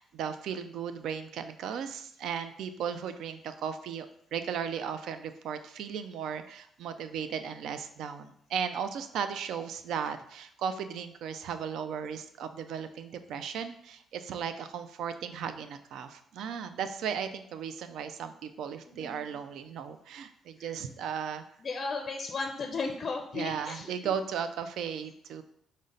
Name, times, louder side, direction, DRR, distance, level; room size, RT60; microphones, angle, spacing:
voice 1, 0.0-21.4 23.3-25.4, right 7 dB, 80° right, 9 dB, 0.3 m, -36 dB
voice 2, 18.9-19.4 20.6-20.9 21.6-24.1, left 4 dB, 45° left, 3 dB, 0.4 m, -36 dB
5.2 x 2.1 x 3.8 m, 0.67 s
cardioid pair, 90°, 0 cm